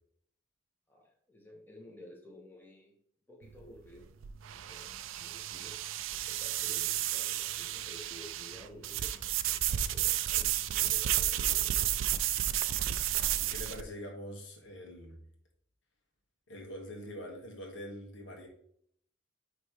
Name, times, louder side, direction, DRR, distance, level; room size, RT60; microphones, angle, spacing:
voice 1, 0.9-2.9 3.3-4.1 4.5-5.7 6.1-11.8, left 1 dB, 10° left, -2 dB, 1.2 m, -53 dB
sound 1, 3.4-13.8, right 12 dB, 80° right, 0.4 m, -32 dB
voice 2, 13.4-15.2 16.5-18.5, equal, 70° left, 1 dB, 1.5 m, -44 dB
9.5 x 3.2 x 3.1 m, 0.65 s
head